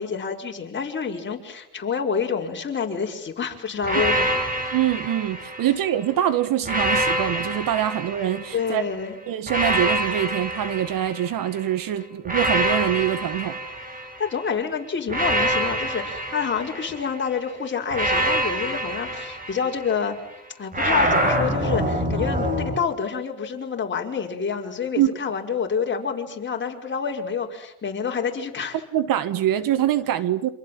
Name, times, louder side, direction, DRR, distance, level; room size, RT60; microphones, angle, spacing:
voice 1, 0.0-4.4 8.5-9.2 14.0-20.2 20.6-28.8, left 6 dB, 25° left, 5.5 m, -28 dB
sound 1, 3.8-6.0 6.6-8.8 9.5-11.6 12.3-14.4 15.1-17.2 17.9-20.1 20.7-22.8, right 1 dB, 20° right, 6.4 m, -26 dB
voice 2, 4.7-8.8 9.3-13.6 25.0-25.1 28.9-30.5, right 11 dB, 50° right, 1.7 m, -24 dB
28.0 x 27.0 x 7.7 m
cardioid pair, 110°, 41 cm